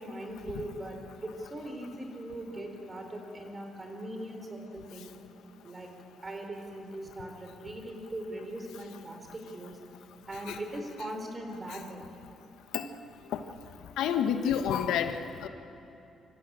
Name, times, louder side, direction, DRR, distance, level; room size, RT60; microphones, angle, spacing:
voice 1, 0.0-5.1 5.6-5.9 6.2-9.8 10.3-12.0, right 1 dB, 25° right, 3 dB, 4.3 m, -40 dB
voice 2, 14.0-15.5, left 8 dB, 85° left, 8 dB, 1.3 m, -29 dB
27.0 x 14.5 x 8.8 m, 2.8 s
cardioid pair, 90°, 0 cm